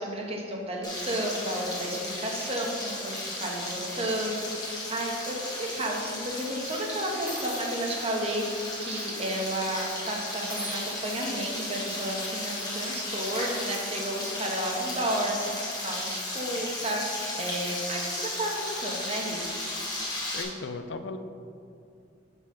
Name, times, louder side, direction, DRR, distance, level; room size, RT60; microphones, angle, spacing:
voice 1, 0.0-19.6, right 1 dB, 35° right, 0 dB, 1.2 m, -32 dB
Frying (food), 0.8-20.4, left 2 dB, 20° left, 1.6 m, -35 dB
sound 1, 5.6-5.9 6.6-6.7 7.3-9.2 9.5-9.7 10.5-11.7 12.1-12.2 12.5-12.7 13.2-14.8, right 1 dB, 10° right, 1.9 m, -45 dB
voice 2, 20.3-21.2, left 3 dB, 70° left, 9 dB, 0.5 m, -36 dB
9.6 x 4.1 x 6.2 m, 2.4 s
head